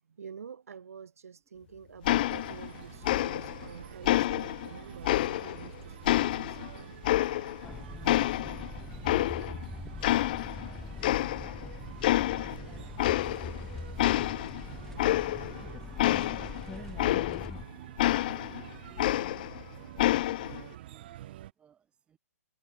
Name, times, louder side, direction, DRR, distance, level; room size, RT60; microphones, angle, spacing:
voice 1, 0.1-6.9, right 6 dB, 75° right, 2.0 m, -47 dB
sound 1, 2.0-2.8 3.0-3.7 4.0-5.7 6.0-7.7 8.0-9.7 10.0-10.7 11.0-11.7 12.0-12.6 13.0-13.6 14.0-17.6 18.0-19.6 20.0-20.6, left 15 dB, 35° left, 0.4 m, -28 dB
sound 2, 2.3-21.5, right 13 dB, 40° right, 0.7 m, -47 dB
sound 3, 7.6-17.6, left 4 dB, 5° left, 1.3 m, -43 dB
voice 2, 8.6-10.9 11.3-11.7 12.0-14.2 14.5-16.3 16.9-20.3 20.7-22.2, right 8 dB, 10° right, 4.9 m, -64 dB
hypercardioid pair, 150°, 8 cm